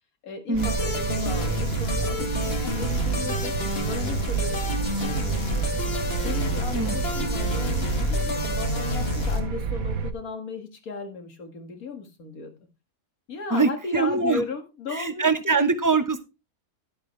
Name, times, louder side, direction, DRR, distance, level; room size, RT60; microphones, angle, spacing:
voice 1, 0.2-3.5 3.9-5.8 6.2-12.5 13.3-15.7, left 4 dB, 70° left, 6 dB, 2.3 m, -36 dB
sound 1, 0.5-10.1, right 6 dB, 65° right, 1.4 m, -29 dB
sound 2, 0.6-9.4, left 2 dB, 40° left, 2.0 m, -29 dB
voice 2, 13.5-14.4 14.9-16.2, right 4 dB, 15° right, 9 dB, 0.7 m, -23 dB
11.5 x 10.5 x 3.2 m, 0.26 s
omnidirectional pair, 1.6 m